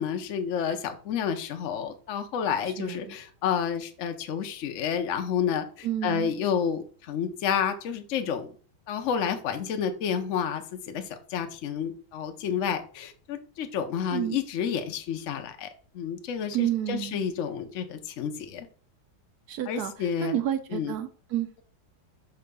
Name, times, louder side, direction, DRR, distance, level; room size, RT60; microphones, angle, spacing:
voice 1, 0.0-8.5 8.9-15.7 15.9-18.7 19.7-20.4 20.7-21.0, left 7 dB, 60° left, 6 dB, 0.8 m, -30 dB
voice 2, 2.8-3.1 5.8-6.3 14.1-14.4 16.5-17.2 19.5-19.9 20.2-21.6, right 11 dB, 75° right, 9 dB, 0.9 m, -30 dB
5.6 x 3.4 x 5.3 m, 0.40 s
omnidirectional pair, 2.3 m